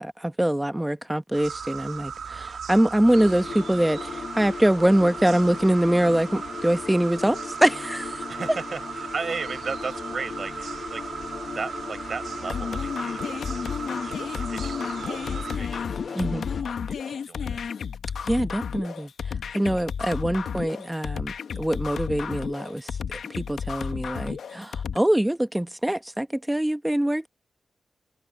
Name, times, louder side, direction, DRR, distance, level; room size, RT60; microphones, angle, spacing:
voice 1, 0.0-8.2 16.1-16.5 18.2-19.1 19.5-22.9 23.4-27.3, right 1 dB, 5° right, 1.2 m, -24 dB
sound 1, 1.3-15.6, right 6 dB, 80° right, 1.7 m, -37 dB
sound 2, 3.1-16.6, left 5 dB, 55° left, 0.7 m, -38 dB
voice 2, 8.3-17.6, right 5 dB, 50° right, 5.2 m, -37 dB
sound 3, 12.5-25.0, left 7 dB, 80° left, 1.3 m, -32 dB
wide cardioid pair, 120°, 0 cm